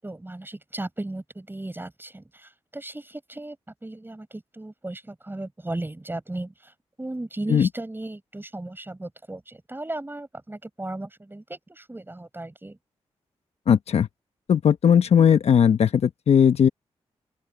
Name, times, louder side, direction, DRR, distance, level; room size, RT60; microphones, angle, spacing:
voice 1, 0.0-3.6 3.8-12.8, right 2 dB, 20° right, 7.9 m, -36 dB
voice 2, 13.7-14.1 14.5-16.7, left 8 dB, 70° left, 1.1 m, -18 dB
open air
cardioid pair, 60°, 11 cm